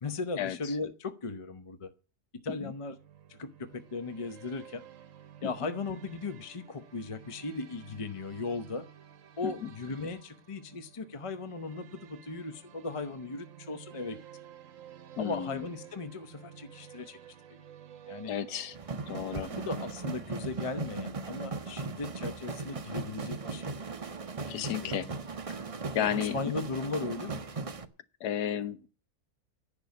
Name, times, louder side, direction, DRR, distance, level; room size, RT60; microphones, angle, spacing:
voice 1, 0.0-1.9 2.4-3.0 3.3-4.8 5.4-8.9 9.4-14.2 15.2-17.2 17.5-17.6 18.1-18.3 19.5-23.7 24.5-25.1 26.0-27.4, left 3 dB, 35° left, 0.5 m, -37 dB
sound 1, 2.8-20.5, right 10 dB, 60° right, 1.1 m, -52 dB
voice 2, 15.2-15.6 18.3-18.8 19.1-19.5 24.5-25.1 25.9-26.4 28.2-28.9, left 10 dB, 80° left, 1.4 m, -32 dB
sound 2, 18.7-27.9, right 4 dB, 35° right, 0.5 m, -38 dB
11.0 x 6.9 x 9.5 m
omnidirectional pair, 1.7 m